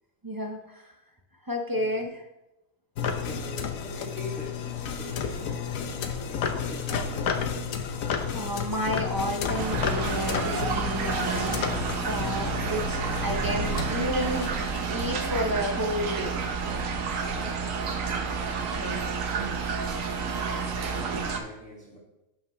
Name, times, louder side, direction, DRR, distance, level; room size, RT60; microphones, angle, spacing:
voice 1, 0.2-0.9 1.4-2.2 8.3-11.8 12.0-16.4 18.8-19.1, equal, 20° right, 2 dB, 0.6 m, -31 dB
voice 2, 1.7-2.1 3.2-7.4 12.3-12.8 17.3-17.8 18.5-18.9 19.3-19.7 20.2-22.0, equal, 5° left, -5 dB, 2.0 m, -44 dB
sound 1, 3.0-15.2, left 6 dB, 85° left, 1.2 m, -32 dB
sound 2, 9.6-21.4, right 5 dB, 75° right, 1.2 m, -30 dB
11.0 x 5.3 x 3.2 m, 0.93 s
omnidirectional pair, 1.4 m